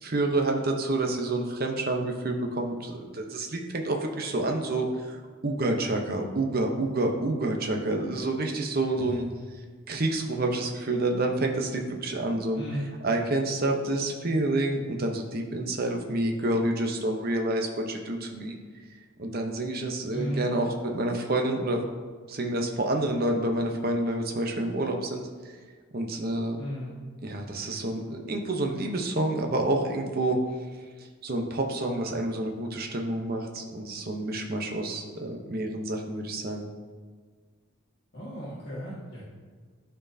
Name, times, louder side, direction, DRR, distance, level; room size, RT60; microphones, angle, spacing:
voice 1, 0.0-9.2 9.9-12.6 13.0-18.6 19.2-21.8 22.3-25.2 25.9-26.6 27.2-30.4 31.0-36.7, right 2 dB, 45° right, 2 dB, 0.8 m, -28 dB
voice 2, 8.9-9.3 12.5-12.9 20.1-20.5 26.6-26.9 38.1-39.2, equal, 50° left, -9 dB, 1.8 m, -35 dB
12.0 x 4.5 x 2.7 m, 1.5 s
head